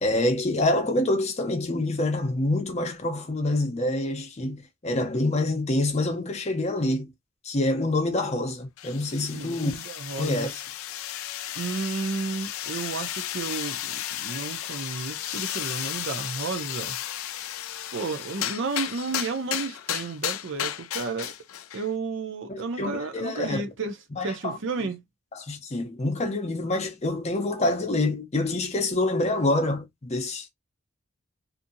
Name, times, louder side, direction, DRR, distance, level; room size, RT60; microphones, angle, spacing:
voice 1, 0.0-7.1 7.4-9.7 10.2-10.6 22.5-23.7 24.2-24.6 25.3-30.5, left 2 dB, 30° left, 0.6 m, -26 dB
sound 1, 8.8-21.9, left 12 dB, 85° left, 0.4 m, -34 dB
voice 2, 9.3-10.5 11.6-17.0 17.9-21.3 21.7-24.0 24.2-25.0, right 4 dB, 60° right, 0.6 m, -32 dB
2.7 x 2.5 x 2.6 m
head